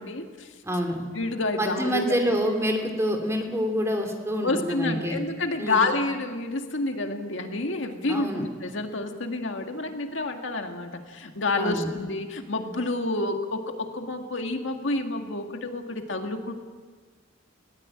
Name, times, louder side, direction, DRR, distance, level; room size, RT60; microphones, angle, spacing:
voice 1, 0.0-0.5 1.1-2.2 4.4-16.5, left 2 dB, 70° left, 4 dB, 2.0 m, -29 dB
voice 2, 0.6-1.1 1.6-5.2 5.6-5.9 8.1-8.4 11.6-11.9, equal, 15° right, 3 dB, 2.9 m, -27 dB
20.5 x 17.5 x 8.7 m, 1.5 s
head